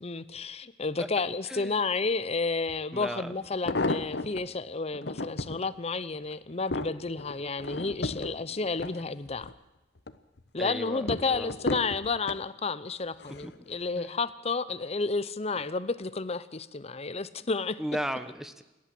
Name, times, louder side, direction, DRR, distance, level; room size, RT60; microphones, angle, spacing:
voice 1, 0.0-9.5 10.5-17.8, left 4 dB, 35° left, 0.9 m, -31 dB
voice 2, 1.5-1.8 2.9-3.4 7.4-7.5 10.6-11.5 13.4-13.5 13.9-14.1 15.6-15.7 17.8-18.6, equal, 5° right, 1.2 m, -36 dB
sound 1, 2.7-2.8 3.4-4.4 4.9-5.6 6.1-9.6 10.0-10.4 11.1-12.4 13.2-13.6 13.9-14.0, left 2 dB, 65° left, 1.1 m, -33 dB
28.5 x 11.5 x 7.8 m
head